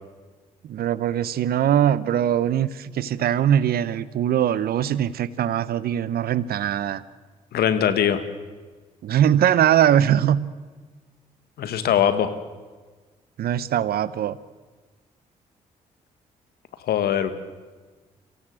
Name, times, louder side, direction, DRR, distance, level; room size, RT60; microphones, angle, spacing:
voice 1, 0.6-7.0 9.0-10.4 13.4-14.4, right 10 dB, 65° right, 17 dB, 0.9 m, -21 dB
voice 2, 7.5-8.2 11.6-12.3 16.8-17.3, left 9 dB, 70° left, 11 dB, 1.6 m, -21 dB
23.5 x 16.5 x 7.9 m, 1.4 s
hypercardioid pair, 45°, 17 cm